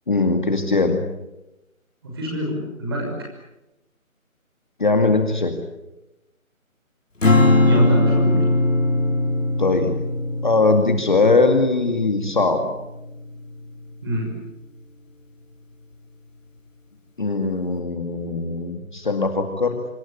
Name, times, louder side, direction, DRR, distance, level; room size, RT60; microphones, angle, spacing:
voice 1, 0.1-1.0 4.8-5.5 9.6-9.9 10.4-12.7 17.2-19.8, left 3 dB, 35° left, 5 dB, 2.3 m, -20 dB
voice 2, 2.0-3.1 7.6-8.4 14.0-14.3, equal, 15° right, 0 dB, 6.0 m, -26 dB
Strum, 7.2-13.6, left 2 dB, 60° left, 5.7 m, -20 dB
26.0 x 24.0 x 8.6 m, 0.93 s
figure-of-eight pair, 180°, 42 cm